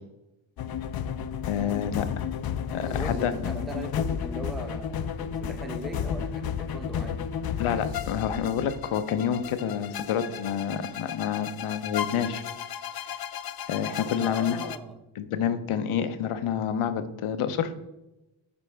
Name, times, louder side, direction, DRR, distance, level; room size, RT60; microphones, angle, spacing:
sound 1, 0.6-14.8, left 8 dB, 50° left, 0.5 m, -33 dB
voice 1, 1.4-2.2 2.7-3.3 7.6-12.4 13.7-14.7 15.2-17.7, left 8 dB, 85° left, 10 dB, 0.8 m, -28 dB
voice 2, 2.9-7.3 14.2-15.0, right 1 dB, ahead, 5 dB, 0.7 m, -39 dB
10.5 x 4.1 x 3.4 m, 0.97 s
cardioid pair, 70°, 49 cm